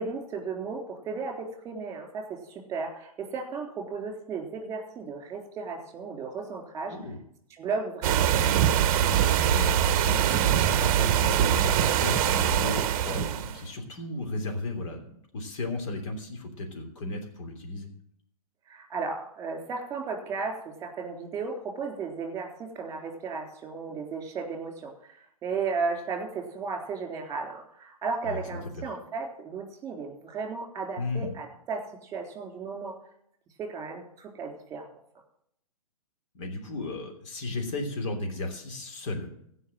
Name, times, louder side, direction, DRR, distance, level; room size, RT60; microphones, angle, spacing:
voice 1, 0.0-7.0 7.6-8.3 18.7-33.0 33.6-34.9, right 4 dB, 15° right, 2 dB, 3.6 m, -35 dB
sound 1, 8.0-13.6, right 10 dB, 35° right, 1.0 m, -23 dB
voice 2, 9.5-17.9 28.3-28.4 28.8-28.9 31.0-31.3 36.3-39.3, left 2 dB, 55° left, 2 dB, 3.2 m, -34 dB
16.0 x 5.7 x 7.6 m, 0.70 s
hypercardioid pair, 135°, 19 cm